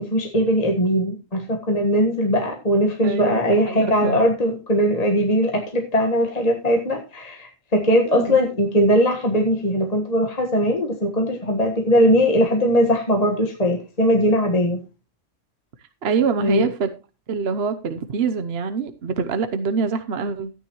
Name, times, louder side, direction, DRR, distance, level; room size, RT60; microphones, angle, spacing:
voice 1, 0.0-14.8 16.4-16.7, equal, 30° left, 2 dB, 1.6 m, -20 dB
voice 2, 3.0-4.2 8.1-8.2 16.0-16.9 17.3-20.5, right 5 dB, 50° right, 9 dB, 1.0 m, -25 dB
13.5 x 9.8 x 3.1 m, 0.29 s
omnidirectional pair, 1.5 m